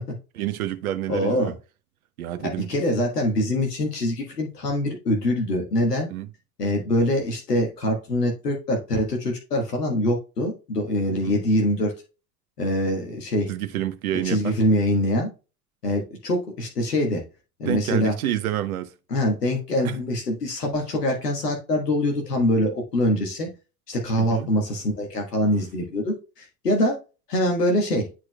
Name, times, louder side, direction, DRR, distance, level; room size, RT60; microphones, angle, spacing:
voice 1, 0.3-1.5 2.2-2.8 6.1-6.3 11.2-11.4 13.5-14.6 17.7-18.9 19.8-20.0 24.2-24.5 25.4-25.5, right 12 dB, 65° right, 1.0 m, -28 dB
voice 2, 1.1-1.5 2.4-6.1 6.6-11.9 12.6-13.5 14.1-15.3 15.8-17.2 17.6-18.1 19.1-23.5 23.9-27.0 27.3-28.1, left 1 dB, 80° left, 1.5 m, -24 dB
10.0 x 4.7 x 2.2 m
figure-of-eight pair, 75°, 47 cm